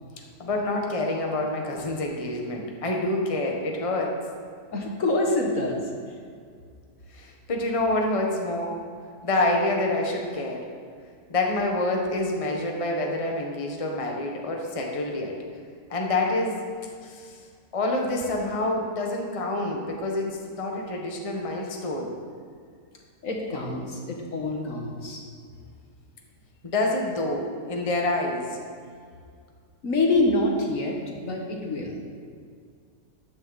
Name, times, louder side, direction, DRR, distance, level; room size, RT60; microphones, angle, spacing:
voice 1, 0.4-4.2 7.1-8.7 9.2-10.6 11.3-15.3 15.9-16.6 16.8-17.4 17.7-22.1 26.6-28.6, left 2 dB, 25° left, 0 dB, 1.2 m, -27 dB
voice 2, 4.7-5.8 23.2-25.2 29.8-31.9, left 2 dB, 60° left, 0 dB, 1.7 m, -26 dB
14.0 x 9.6 x 4.1 m, 2.1 s
omnidirectional pair, 1.6 m